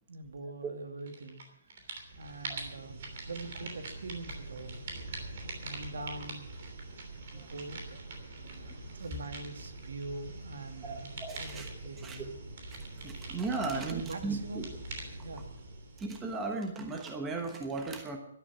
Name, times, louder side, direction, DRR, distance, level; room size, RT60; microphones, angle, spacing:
voice 1, 0.1-1.4 2.2-4.8 5.6-6.5 7.3-8.0 8.4-8.7 8.9-12.3 13.6-14.7 15.2-15.5, right 2 dB, 70° right, 6 dB, 2.5 m, -43 dB
sound 1, 1.1-1.4 1.7-16.7, right 2 dB, 35° right, 3.2 m, -43 dB
voice 2, 7.1-7.5 10.8-11.7 12.0-12.2 12.7-14.7 16.0-18.2, right 3 dB, 10° right, 3 dB, 1.2 m, -36 dB
12.5 x 12.0 x 7.2 m, 0.74 s
hypercardioid pair, 180°, 0 cm